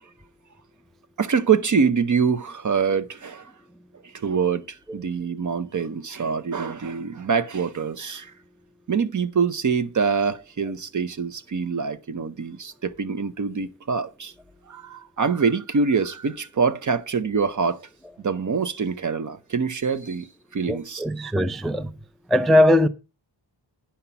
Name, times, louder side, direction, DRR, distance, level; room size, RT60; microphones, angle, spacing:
voice 1, 1.2-3.5 4.1-8.3 8.9-14.3 14.7-17.8 18.2-21.3, right 5 dB, 45° right, 0.8 m, -25 dB
voice 2, 20.7-21.9 22.3-22.9, left 1 dB, ahead, 0.4 m, -20 dB
10.0 x 5.6 x 5.7 m
wide cardioid pair, 125°, 43 cm